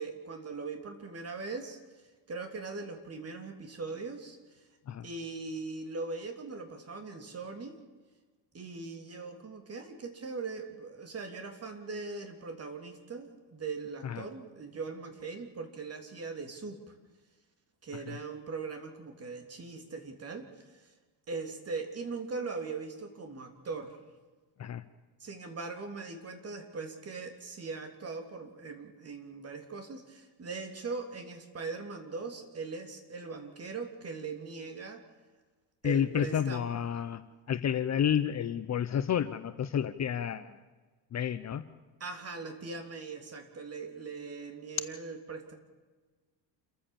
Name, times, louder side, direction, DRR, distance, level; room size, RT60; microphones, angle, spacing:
voice 1, 0.0-1.8 2.3-4.6 5.0-7.8 8.5-16.9 17.8-20.9 21.3-24.0 25.2-35.0 35.8-36.7 42.0-45.6, right 4 dB, 30° right, 6 dB, 3.4 m, -40 dB
voice 2, 35.8-37.2 37.5-40.6 41.1-41.6, left 9 dB, 35° left, 12 dB, 0.9 m, -30 dB
29.0 x 14.5 x 7.3 m, 1.3 s
cardioid pair, 130°, 45 cm